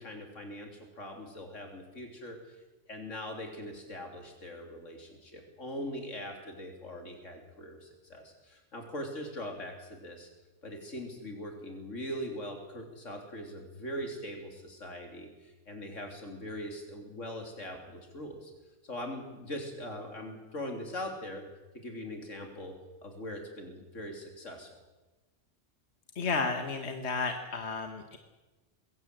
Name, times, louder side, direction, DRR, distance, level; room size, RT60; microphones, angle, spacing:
voice 1, 0.0-2.6 2.9-10.3 10.6-18.5 18.8-21.5 21.7-22.7 23.0-24.7, left 1 dB, 85° left, 3 dB, 3.9 m, -41 dB
voice 2, 26.2-28.2, left 4 dB, 60° left, 5 dB, 1.7 m, -32 dB
21.5 x 17.0 x 7.9 m, 1.1 s
omnidirectional pair, 1.3 m